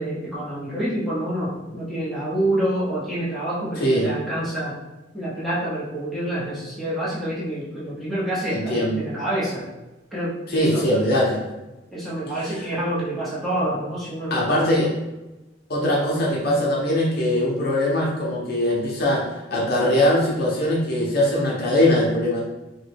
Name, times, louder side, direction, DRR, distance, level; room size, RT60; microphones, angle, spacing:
voice 1, 0.0-4.8 5.1-9.6 10.1-10.9 11.9-14.8, right 1 dB, ahead, -9 dB, 0.8 m, -27 dB
voice 2, 8.5-9.0 10.5-11.4 12.4-12.5 14.3-14.9 15.7-22.4, left 1 dB, 55° left, -3 dB, 0.7 m, -21 dB
3.0 x 2.2 x 3.3 m, 1.1 s
head